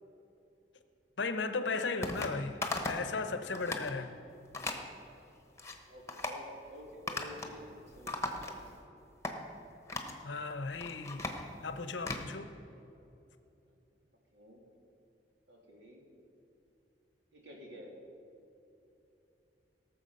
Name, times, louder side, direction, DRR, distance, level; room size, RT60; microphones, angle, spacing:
voice 1, 1.2-4.2 10.0-11.3 11.6-12.5, left 4 dB, 85° left, 0.8 m, -36 dB
sound 1, 2.0-2.3 2.6-3.1 3.4-3.9 4.5-4.8 5.4-5.8 6.1-6.4 7.1-7.6 7.8-8.8 9.2-9.4 9.9-10.2 10.7-12.3, left 2 dB, 15° left, 1.1 m, -38 dB
voice 2, 5.9-8.6 14.3-14.6 15.5-16.0 17.3-17.9, left 1 dB, 80° right, 2.6 m, -51 dB
18.0 x 7.0 x 5.5 m
head